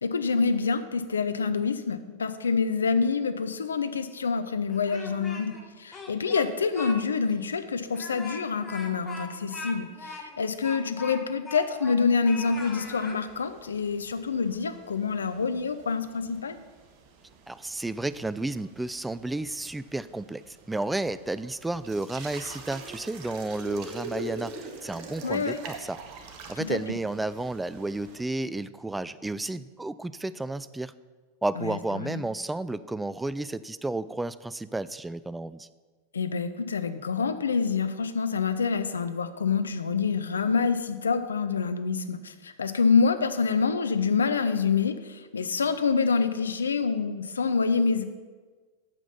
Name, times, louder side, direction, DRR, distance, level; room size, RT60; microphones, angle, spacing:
voice 1, 0.0-16.6 25.2-25.6 26.6-26.8 31.6-32.2 36.1-48.0, left 5 dB, 70° left, 11 dB, 0.6 m, -27 dB
Speech, 4.7-5.6 5.9-7.0 7.3-7.4 7.9-12.0 12.2-13.2, left 3 dB, 15° left, 1.4 m, -41 dB
sound 1, 12.4-28.2, right 3 dB, 40° right, 1.2 m, -45 dB
voice 2, 17.5-24.6 24.8-26.0 26.5-30.9 31.4-35.7, right 2 dB, 5° right, 16 dB, 0.3 m, -32 dB
9.0 x 7.2 x 5.7 m, 1.4 s
figure-of-eight pair, 90°, 0 cm